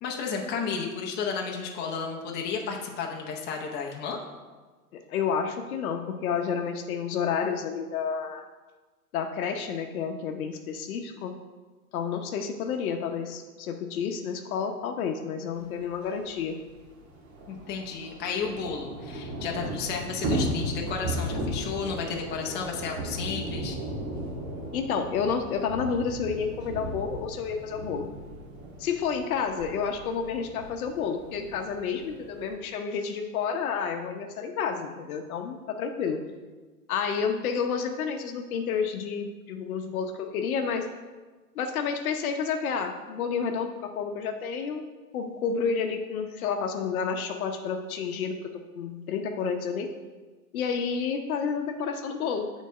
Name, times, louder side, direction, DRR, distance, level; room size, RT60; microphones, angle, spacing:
voice 1, 0.0-4.2 17.5-23.8, left 5 dB, 20° left, 0 dB, 0.8 m, -32 dB
voice 2, 4.9-8.4 9.1-11.3 11.9-16.6 24.7-28.1 28.8-36.2 36.9-40.9 41.5-44.9 45.1-49.9 50.5-52.5, left 6 dB, 60° left, 5 dB, 0.9 m, -30 dB
Thunder / Rain, 15.9-16.0 16.3-16.4 16.7-32.5, right 1 dB, 55° right, 1.9 m, -36 dB
7.3 x 4.1 x 5.2 m, 1.3 s
hypercardioid pair, 135°, 47 cm